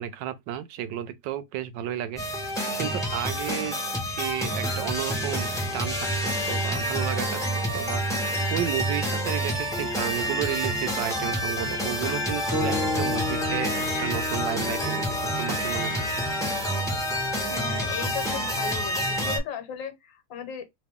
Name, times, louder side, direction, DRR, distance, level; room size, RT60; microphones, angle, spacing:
voice 1, 0.0-2.4 2.8-3.8 4.2-6.1 6.5-16.1, right 11 dB, 75° right, 1.2 m, -33 dB
sound 1, 2.2-19.4, equal, ahead, 0.9 m, -28 dB
sound 2, 12.5-16.8, left 3 dB, 45° left, 1.2 m, -34 dB
voice 2, 17.5-20.7, left 8 dB, 75° left, 1.6 m, -36 dB
3.0 x 2.9 x 3.5 m
omnidirectional pair, 2.1 m